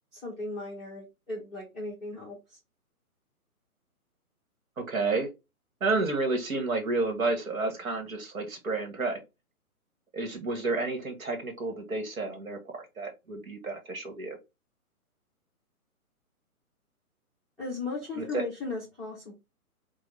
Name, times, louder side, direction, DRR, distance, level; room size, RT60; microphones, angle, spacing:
voice 1, 0.1-2.4 17.6-19.3, left 3 dB, ahead, -8 dB, 0.7 m, -36 dB
voice 2, 4.8-5.3 5.8-9.2 10.1-14.4 18.2-18.5, right 3 dB, 65° right, 4 dB, 1.7 m, -30 dB
4.6 x 2.4 x 3.2 m, 0.24 s
figure-of-eight pair, 135°, 45 cm